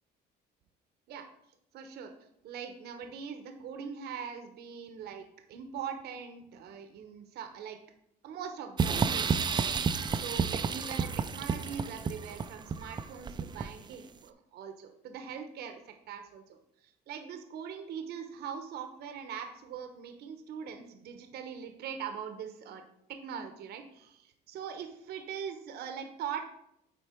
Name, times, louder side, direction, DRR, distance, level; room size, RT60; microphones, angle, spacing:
voice 1, 1.7-2.1 2.4-5.2 5.5-7.8 8.2-22.8 23.1-26.5, right 7 dB, 70° right, 7 dB, 0.9 m, -42 dB
sound 1, 8.8-13.9, right 5 dB, 25° right, 0.4 m, -31 dB
8.2 x 4.4 x 4.4 m, 0.78 s
cardioid pair, 110°, 17 cm